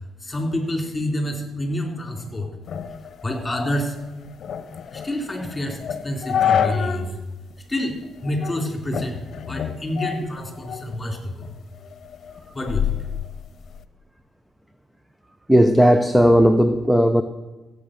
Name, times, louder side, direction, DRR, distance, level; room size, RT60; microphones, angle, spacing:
voice 1, 0.2-2.5 3.2-4.0 4.9-7.2 7.7-9.2 9.5-11.5 12.5-13.0, left 1 dB, 15° left, 3.5 m, -28 dB
sound 1, 2.7-7.1 7.5-7.6 8.2-8.6 8.9-11.0 11.4-13.8, left 8 dB, 55° left, 0.9 m, -28 dB
voice 2, 15.5-17.2, equal, 5° right, 0.7 m, -15 dB
15.0 x 8.2 x 6.6 m
cardioid pair, 95°, 0 cm